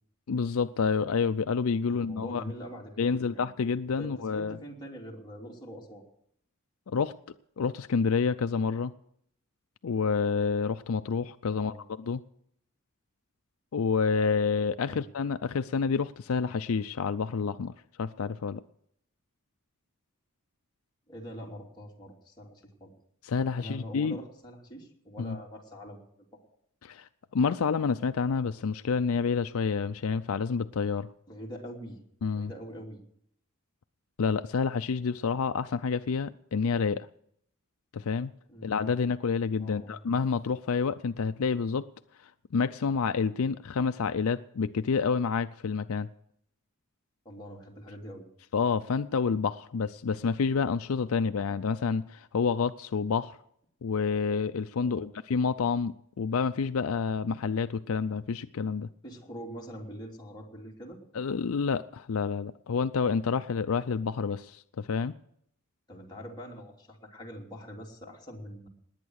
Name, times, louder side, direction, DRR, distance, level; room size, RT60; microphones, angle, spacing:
voice 1, 0.3-2.4 3.0-4.6 6.9-7.1 7.6-8.9 9.8-12.2 13.7-18.6 23.2-24.2 25.2-25.4 26.8-31.1 32.2-32.5 34.2-37.1 37.9-38.3 38.6-41.9 42.5-46.1 48.5-53.4 53.8-58.9 61.1-65.1, left 5 dB, 75° left, 0.5 m, -28 dB
voice 2, 1.9-3.4 4.0-6.0 11.5-11.9 14.8-15.1 21.1-22.9 23.6-26.0 26.3-26.4 31.3-32.0 32.3-33.0 38.5-38.8 39.6-40.0 47.2-48.3 54.8-55.1 59.0-61.0 65.9-68.7, equal, 20° left, 2.9 m, -44 dB
19.5 x 9.1 x 6.4 m
head